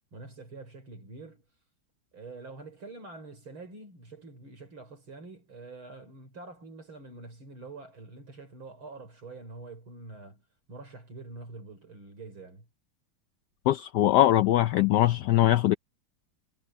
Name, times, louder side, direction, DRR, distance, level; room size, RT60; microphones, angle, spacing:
voice 1, 0.1-1.4 2.1-10.4 10.7-12.7, right 3 dB, 70° right, 6.0 m, -46 dB
voice 2, 13.7-15.7, left 13 dB, 80° left, 0.9 m, -22 dB
omnidirectional pair, 2.3 m